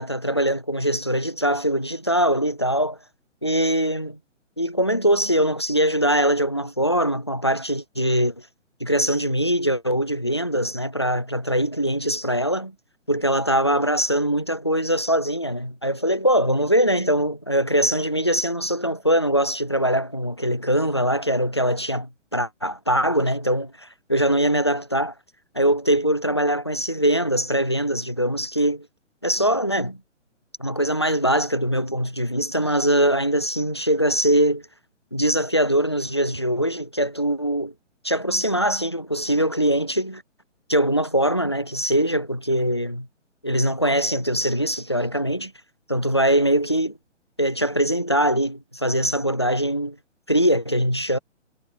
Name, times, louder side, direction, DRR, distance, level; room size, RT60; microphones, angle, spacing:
voice 1, 0.0-3.0 3.4-4.2 4.6-8.3 8.8-12.7 13.1-25.1 25.5-28.9 29.2-30.0 30.6-34.6 35.1-37.7 38.1-40.2 40.7-43.1 43.4-45.5 45.9-47.0 47.4-50.0 50.3-51.2, equal, 25° left, 0.4 m, -22 dB
hypercardioid pair, 170°, 37 cm